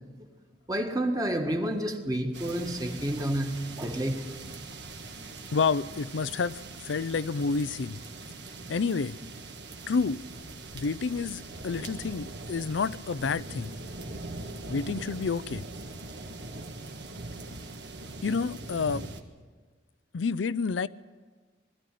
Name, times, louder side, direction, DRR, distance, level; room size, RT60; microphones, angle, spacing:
voice 1, 0.7-4.2, right 1 dB, 20° right, 1.7 m, -29 dB
sound 1, 2.3-19.2, right 2 dB, 65° right, 1.6 m, -42 dB
voice 2, 5.5-8.0 8.7-9.2 9.9-10.2 10.7-13.7 14.7-15.6 18.2-19.1 20.1-20.9, left 5 dB, 85° left, 0.5 m, -29 dB
20.5 x 14.0 x 9.2 m
head